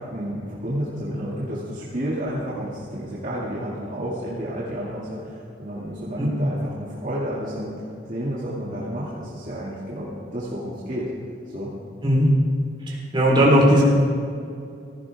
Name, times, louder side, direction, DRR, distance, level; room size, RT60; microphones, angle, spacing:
voice 1, 0.0-11.1 11.5-11.7, equal, 45° right, -8 dB, 2.3 m, -31 dB
voice 2, 12.9-13.8, equal, 30° right, -4 dB, 3.7 m, -17 dB
17.0 x 15.0 x 3.6 m, 2.5 s
head